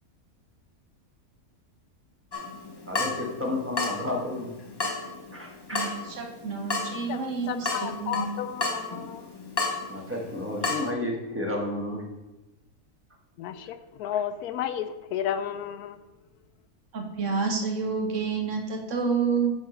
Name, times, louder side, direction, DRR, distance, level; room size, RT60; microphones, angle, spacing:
Water tap faucet / Drip, 2.3-10.9, left 3 dB, 30° left, 0.5 m, -33 dB
voice 1, 2.9-4.5 5.3-5.9 9.9-12.0, left 1 dB, 10° right, -1 dB, 1.3 m, -31 dB
voice 2, 5.7-8.3 16.9-19.5, right 5 dB, 55° right, 3 dB, 1.2 m, -29 dB
voice 3, 7.1-9.3 13.4-16.0, left 9 dB, 80° left, 10 dB, 1.1 m, -32 dB
9.1 x 3.9 x 5.1 m, 1.0 s
omnidirectional pair, 1.6 m